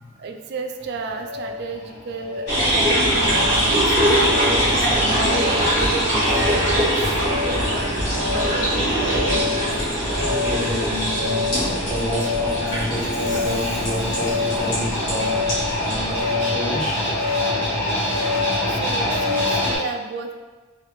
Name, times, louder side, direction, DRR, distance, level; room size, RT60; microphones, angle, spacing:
voice 1, 0.2-6.9 7.2-9.3 9.8-10.0 18.6-20.3, right 4 dB, 50° right, 4 dB, 0.3 m, -33 dB
sound 1, 0.8-19.8, left 2 dB, 10° left, 1.3 m, -26 dB
sound 2, 2.5-16.2, equal, 55° left, 1.5 m, -22 dB
voice 2, 10.2-15.3 15.8-17.4, left 1 dB, 40° left, -8 dB, 1.0 m, -29 dB
3.0 x 2.5 x 2.9 m, 1.2 s
head